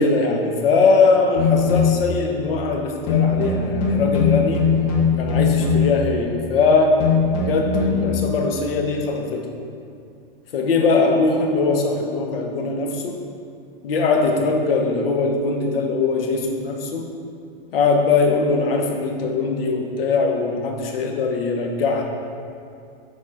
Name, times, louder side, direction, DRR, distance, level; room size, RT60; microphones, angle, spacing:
voice 1, 0.0-4.6 5.2-6.9 7.3-9.4 10.5-13.2 13.8-17.1 17.7-22.0, left 4 dB, 70° left, 2 dB, 1.1 m, -21 dB
sound 1, 1.3-2.1 3.1-6.1 7.0-8.1, left 6 dB, 45° left, 1.4 m, -20 dB
7.0 x 4.7 x 4.2 m, 2.4 s
supercardioid pair, 160°, 29 cm